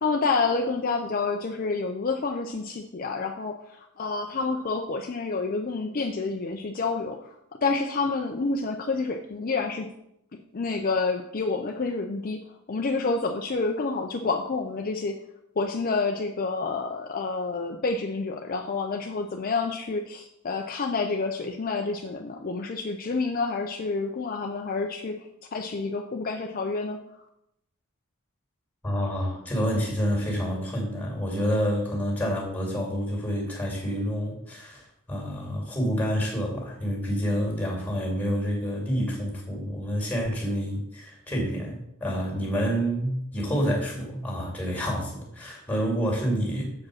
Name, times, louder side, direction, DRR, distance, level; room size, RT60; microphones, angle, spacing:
voice 1, 0.0-7.2 7.6-9.9 10.5-12.4 12.7-15.2 15.6-25.2 25.5-27.0, left 4 dB, 40° left, 3 dB, 0.5 m, -28 dB
voice 2, 28.8-46.7, equal, 5° left, -1 dB, 2.4 m, -28 dB
7.2 x 5.0 x 6.4 m, 0.80 s
head